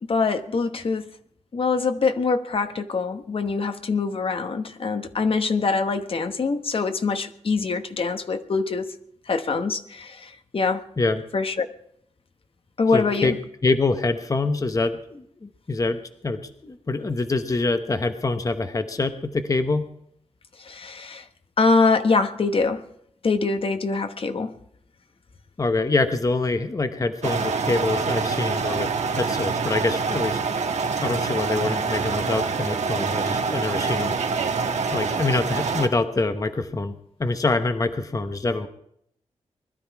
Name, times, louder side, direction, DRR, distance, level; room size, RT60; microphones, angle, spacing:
voice 1, 0.1-1.1 1.5-8.9 9.3-10.8 11.3-11.7 12.8-13.3 20.6-21.3 21.6-22.8 23.2-24.5, left 4 dB, 50° left, 8 dB, 1.1 m, -24 dB
voice 2, 12.9-13.4 13.6-19.9 25.6-30.4 31.0-34.2 34.9-38.7, left 3 dB, 30° left, 8 dB, 0.9 m, -25 dB
sound 1, 27.2-35.9, right 5 dB, 75° right, 1.6 m, -26 dB
21.0 x 12.5 x 4.7 m, 0.71 s
wide cardioid pair, 105°, 12 cm